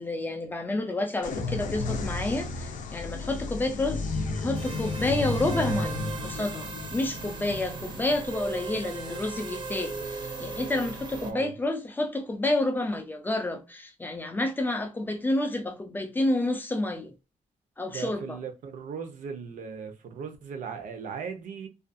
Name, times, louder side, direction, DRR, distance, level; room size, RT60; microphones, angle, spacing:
voice 1, 0.0-4.1 4.4-17.1 17.8-18.4, left 2 dB, 15° left, 0.3 m, -29 dB
sound 1, 1.2-8.8, left 3 dB, 85° left, 0.5 m, -33 dB
sound 2, 4.5-11.3, right 3 dB, 35° right, 0.5 m, -37 dB
voice 2, 11.2-11.5 17.9-21.7, right 6 dB, 85° right, 0.6 m, -38 dB
2.4 x 2.3 x 2.5 m
wide cardioid pair, 175°, 13 cm